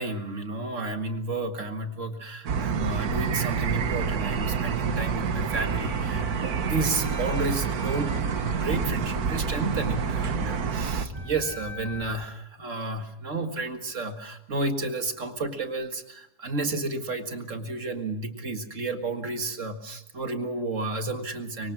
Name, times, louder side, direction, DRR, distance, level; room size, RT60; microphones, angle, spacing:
voice 1, 0.0-21.7, right 3 dB, 50° right, 6 dB, 2.1 m, -32 dB
sound 1, 2.5-11.1, right 6 dB, 70° right, 1.6 m, -28 dB
sound 2, 5.2-12.2, equal, 15° right, 8.3 m, -41 dB
25.0 x 22.5 x 6.1 m, 0.75 s
omnidirectional pair, 1.7 m